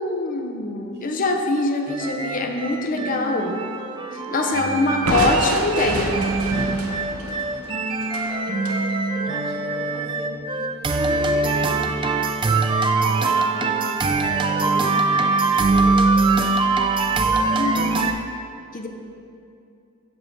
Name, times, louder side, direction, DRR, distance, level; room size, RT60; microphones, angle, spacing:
voice 1, 0.0-3.6 4.3-6.2 17.5-18.2 18.7-18.9, left 2 dB, 40° left, 3 dB, 0.5 m, -23 dB
sound 1, 1.9-18.1, right 3 dB, 25° right, 0.3 m, -22 dB
voice 2, 4.1-5.3 6.5-7.9 8.4-8.8 9.1-12.1 12.8-16.1, equal, 50° right, 0 dB, 0.9 m, -40 dB
Crushing, 5.1-8.8, right 2 dB, 85° right, 0.7 m, -28 dB
7.1 x 5.3 x 4.4 m, 2.5 s
head